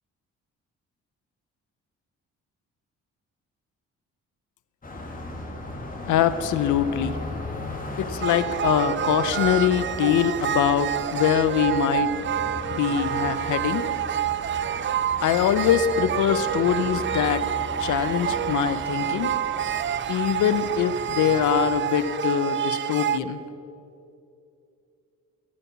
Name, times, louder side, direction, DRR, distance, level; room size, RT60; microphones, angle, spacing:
Car passing by, 4.8-22.0, left 2 dB, 25° left, 2.3 m, -37 dB
voice 1, 6.1-7.2 8.0-12.1 12.7-13.9 15.2-17.4 17.8-19.3 20.1-23.4, left 9 dB, 80° left, 13 dB, 0.8 m, -23 dB
sound 1, 8.2-23.2, right 10 dB, 40° right, 0.5 m, -28 dB
14.0 x 12.5 x 6.0 m, 2.7 s
cardioid pair, 90°, 30 cm